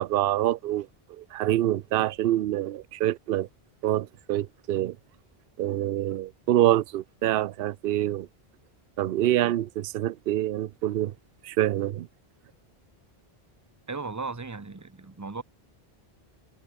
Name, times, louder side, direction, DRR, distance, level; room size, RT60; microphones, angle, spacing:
voice 1, 0.0-3.5 3.8-5.0 5.6-8.3 9.0-11.1 11.4-12.1, right 13 dB, 70° right, 0.7 m, -26 dB
voice 2, 13.9-15.4, right 4 dB, 20° right, 0.9 m, -36 dB
omnidirectional pair, 1.0 m